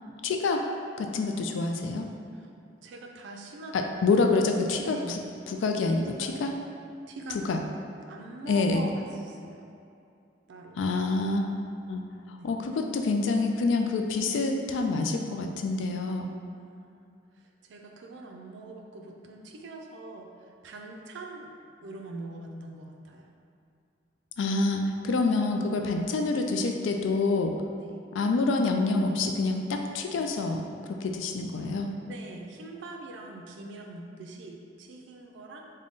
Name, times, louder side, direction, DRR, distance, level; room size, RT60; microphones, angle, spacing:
voice 1, 0.2-0.6 1.0-2.1 3.7-5.2 5.5-6.5 7.3-7.6 8.5-8.8 10.8-11.5 11.9-12.0 12.4-16.3 24.4-27.6 28.1-31.9, left 3 dB, 85° left, 4 dB, 0.3 m, -27 dB
voice 2, 2.8-3.7 4.8-5.2 6.0-6.4 7.1-7.4 8.0-9.6 10.5-10.8 12.4-12.5 16.5-20.3 20.6-21.5 21.8-23.3 27.8-28.0 32.0-35.6, right 2 dB, 70° right, 1 dB, 0.4 m, -43 dB
3.7 x 2.1 x 3.6 m, 2.5 s
head